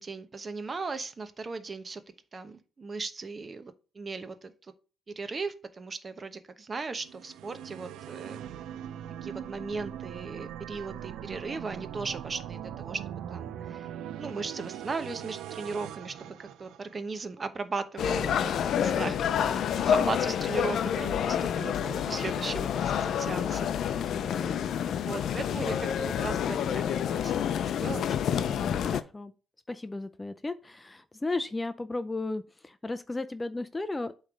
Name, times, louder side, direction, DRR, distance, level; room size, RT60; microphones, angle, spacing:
voice 1, 0.0-2.0 2.3-4.5 5.2-8.4 9.2-13.0 13.3-13.9 14.2-19.2 19.4-22.7 22.9-24.0 25.0-28.0, right 4 dB, 35° right, 0.9 m, -37 dB
sound 1, 7.0-17.2, right 10 dB, 85° right, 0.5 m, -41 dB
sound 2, 18.0-29.0, left 8 dB, 70° left, 0.5 m, -28 dB
voice 2, 19.4-20.1 23.9-24.6 28.3-29.3 29.7-34.1, left 2 dB, 20° left, 0.4 m, -35 dB
8.1 x 3.2 x 5.0 m
cardioid pair, 90°, 0 cm